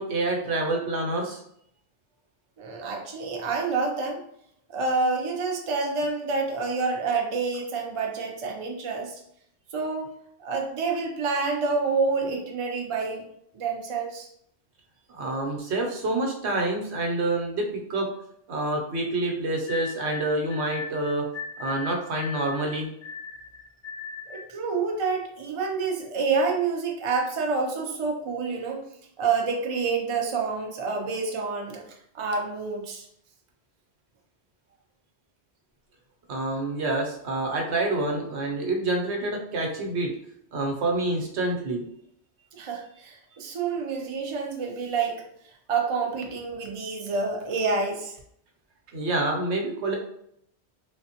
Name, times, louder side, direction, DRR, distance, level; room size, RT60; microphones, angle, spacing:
voice 1, 0.0-1.4 15.1-17.6 17.9-18.1 18.5-21.3 21.6-22.9 36.3-40.1 40.5-41.8 48.9-50.0, right 2 dB, 80° right, 1 dB, 0.9 m, -27 dB
voice 2, 2.6-4.2 4.7-9.2 9.7-10.1 10.4-13.2 13.5-14.3 24.3-28.8 29.2-31.8 32.1-33.1 42.5-48.2, right 4 dB, 50° right, 1 dB, 0.4 m, -28 dB
sound 1, 19.7-24.6, left 5 dB, 55° left, 0.4 m, -38 dB
3.1 x 2.1 x 2.8 m, 0.72 s
omnidirectional pair, 1.1 m